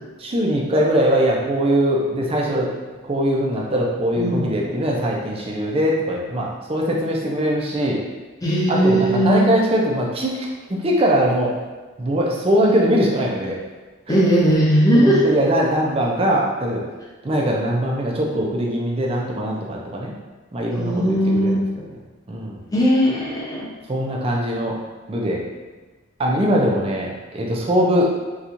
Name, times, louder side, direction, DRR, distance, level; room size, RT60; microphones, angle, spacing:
voice 1, 0.2-2.7 3.0-8.0 8.7-11.5 12.0-13.6 14.1-14.2 14.9-16.8 17.2-20.1 20.5-21.6 22.3-22.6 23.9-24.7 25.1-25.4 26.2-28.1, equal, 25° right, -2 dB, 0.4 m, -21 dB
voice 2, 8.4-9.4 14.1-15.2 20.8-21.5 22.7-23.7, equal, 15° left, -5 dB, 0.6 m, -18 dB
4.2 x 2.4 x 2.6 m, 1.3 s
head